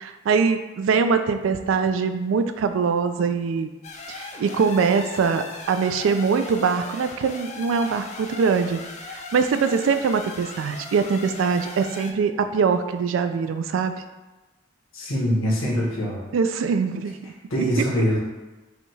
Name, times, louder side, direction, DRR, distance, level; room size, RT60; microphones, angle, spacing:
voice 1, 0.0-3.7 4.1-8.8 9.1-13.9 16.3-17.3 17.8-17.9, right 5 dB, 70° right, 9 dB, 0.3 m, -23 dB
sound 1, 3.8-12.1, left 3 dB, 35° left, 0.4 m, -38 dB
voice 2, 14.9-16.2 17.5-18.2, equal, 85° left, -4 dB, 1.2 m, -23 dB
5.0 x 2.3 x 3.2 m, 1.2 s
head